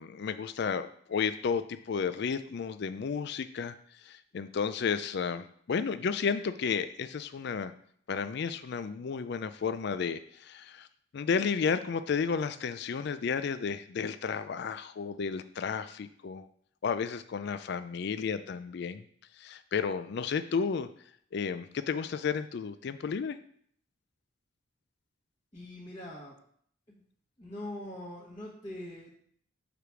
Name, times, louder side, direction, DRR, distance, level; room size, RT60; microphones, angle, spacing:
voice 1, 0.0-3.7 4.0-7.7 8.1-10.9 11.1-16.5 16.8-19.0 19.4-20.9 21.3-23.4, left 6 dB, 55° left, 12 dB, 0.4 m, -32 dB
voice 2, 25.5-26.3 26.9-27.0 27.4-29.1, left 1 dB, 25° left, -6 dB, 1.5 m, -42 dB
5.0 x 4.9 x 6.0 m, 0.62 s
head